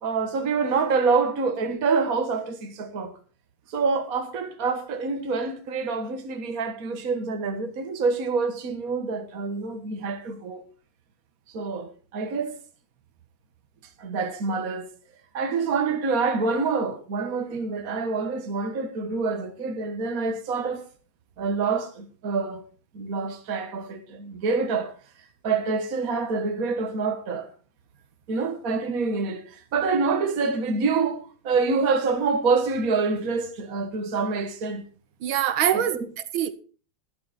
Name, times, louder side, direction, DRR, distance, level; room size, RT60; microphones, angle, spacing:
voice 1, 0.0-3.1 3.7-10.6 11.5-12.6 14.0-14.9 15.3-20.9 21.4-22.6 22.9-24.9 25.4-27.5 28.3-34.8 35.7-36.1, right 4 dB, 45° right, 1.8 m, -26 dB
voice 2, 35.2-36.5, right 10 dB, 90° right, 1.8 m, -24 dB
12.5 x 12.0 x 4.2 m
omnidirectional pair, 2.2 m